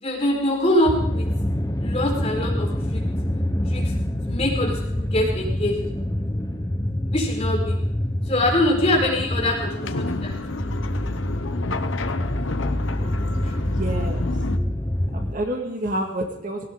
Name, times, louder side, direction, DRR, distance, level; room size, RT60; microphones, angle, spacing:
voice 1, 0.0-1.3 1.8-3.0 3.7-3.8 4.3-5.8 7.1-7.8 8.3-10.3 13.4-13.5, left 1 dB, 30° left, -1 dB, 4.6 m, -23 dB
sound 1, 0.9-15.3, left 1 dB, 15° left, 0.8 m, -26 dB
sound 2, 9.6-14.6, left 3 dB, 70° left, 1.0 m, -31 dB
voice 2, 11.7-12.3 13.7-14.3 15.1-16.7, right 1 dB, 40° right, 2 dB, 2.0 m, -29 dB
18.0 x 18.0 x 3.9 m, 0.71 s
head